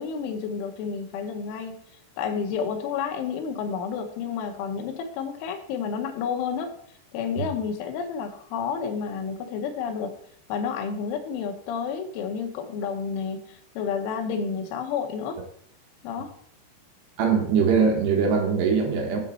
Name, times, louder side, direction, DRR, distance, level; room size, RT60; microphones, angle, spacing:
voice 1, 0.0-1.8 2.2-6.7 7.1-10.2 10.5-15.4 16.0-16.3, left 6 dB, 85° left, 5 dB, 3.4 m, -30 dB
voice 2, 17.2-19.2, right 5 dB, 70° right, 2 dB, 3.0 m, -22 dB
7.9 x 6.5 x 4.2 m, 0.65 s
omnidirectional pair, 5.4 m